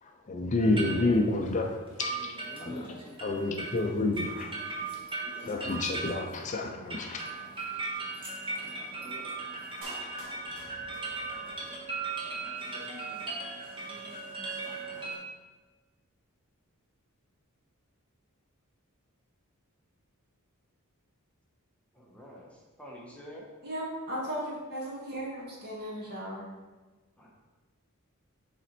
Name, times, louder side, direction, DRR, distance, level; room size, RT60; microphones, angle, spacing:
voice 1, 0.0-2.2 2.6-4.5 5.4-7.2, left 2 dB, 35° left, 3 dB, 0.5 m, -29 dB
sound 1, 0.6-15.2, right 3 dB, 25° right, 1.3 m, -38 dB
Clapping, 9.8-11.8 12.1-12.2, right 1 dB, 75° right, 1.5 m, -48 dB
voice 2, 21.9-23.4 27.2-27.3, equal, 5° left, -4 dB, 0.9 m, -48 dB
voice 3, 23.6-26.5, equal, 45° right, -5 dB, 2.0 m, -36 dB
7.1 x 4.2 x 4.1 m, 1.3 s
head